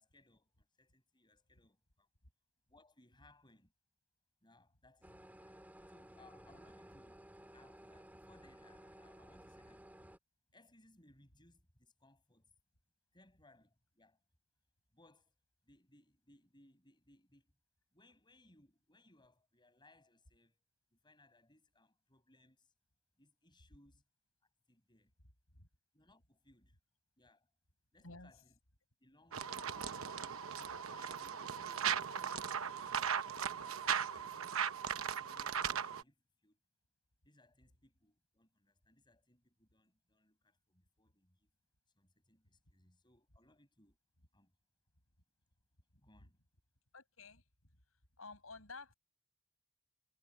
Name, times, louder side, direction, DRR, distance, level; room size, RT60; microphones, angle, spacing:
voice 1, 0.0-2.1 2.7-3.7 4.4-5.6 5.9-9.9 10.5-12.5 13.1-14.2 14.9-15.4 15.6-17.5 17.9-20.6 20.9-22.7 23.2-24.0 24.7-25.1 25.9-26.8 27.2-27.5 27.9-28.5 29.0-29.7 30.5-32.9 33.2-34.4 34.7-36.6 37.2-41.5 42.0-44.0 44.3-44.5 46.0-46.4, left 2 dB, 20° left, 6.4 m, -68 dB
sound 1, 5.0-10.2, right 1 dB, 10° right, 4.2 m, -57 dB
voice 2, 28.0-28.4 46.2-46.3 46.9-47.7 48.2-48.9, left 3 dB, 80° left, 7.8 m, -53 dB
sound 2, 29.3-36.0, right 7 dB, 75° right, 0.9 m, -38 dB
head